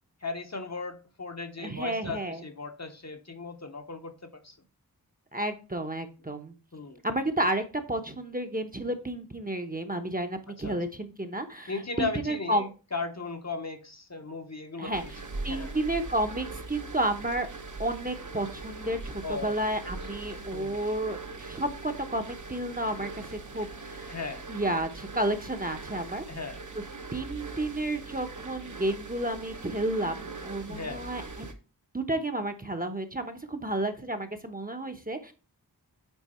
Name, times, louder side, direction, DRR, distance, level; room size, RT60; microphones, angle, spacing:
voice 1, 0.2-4.6 6.7-7.0 10.5-10.8 11.7-15.1 15.5-15.7 19.2-19.9 20.5-20.8 24.1-24.5 26.3-26.6 30.7-31.0, left 4 dB, 40° left, 1.0 m, -37 dB
voice 2, 1.6-2.4 5.3-6.5 7.0-11.7 12.0-12.7 14.8-15.0 15.4-17.5 17.8-24.2 24.5-26.2 27.1-31.2 31.9-35.3, right 1 dB, 20° right, 0.9 m, -31 dB
sound 1, 14.9-31.5, right 3 dB, 50° right, 1.0 m, -41 dB
9.1 x 4.1 x 4.3 m
wide cardioid pair, 60°, 39 cm